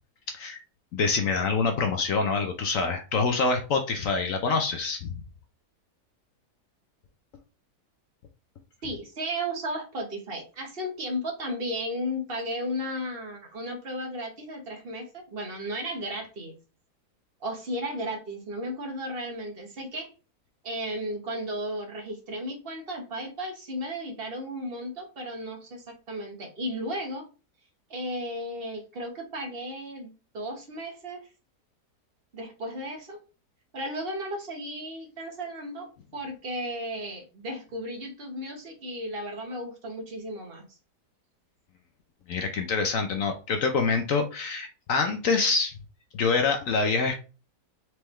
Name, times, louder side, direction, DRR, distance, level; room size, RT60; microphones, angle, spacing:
voice 1, 0.9-5.2 42.3-45.7 46.1-47.1, left 4 dB, 65° left, 5 dB, 1.0 m, -26 dB
voice 2, 8.8-16.6 17.4-20.1 20.6-27.2 27.9-31.3 32.3-33.2 33.7-40.6, equal, 40° right, 3 dB, 1.3 m, -34 dB
4.5 x 3.4 x 3.1 m, 0.33 s
omnidirectional pair, 1.7 m